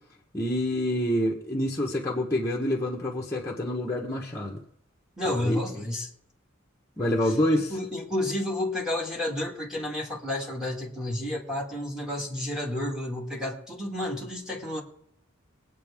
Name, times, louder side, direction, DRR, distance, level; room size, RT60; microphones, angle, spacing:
voice 1, 0.3-4.6 5.4-5.6 7.0-7.8, left 1 dB, 15° left, -4 dB, 1.3 m, -27 dB
voice 2, 5.2-6.1 7.7-14.8, left 1 dB, 5° right, -3 dB, 2.0 m, -31 dB
21.5 x 8.4 x 3.6 m, 0.72 s
head